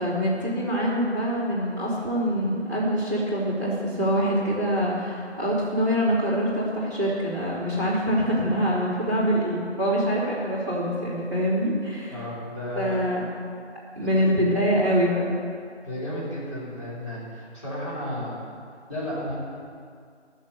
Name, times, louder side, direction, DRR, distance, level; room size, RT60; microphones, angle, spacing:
voice 1, 0.0-12.2 12.7-13.3 13.9-15.3, equal, 15° right, -12 dB, 3.0 m, -24 dB
voice 2, 12.1-13.0 14.0-14.2 15.8-18.4 18.9-19.4, left 1 dB, 25° left, -10 dB, 3.5 m, -33 dB
12.5 x 7.4 x 6.7 m, 2.2 s
figure-of-eight pair, 170°, 35 cm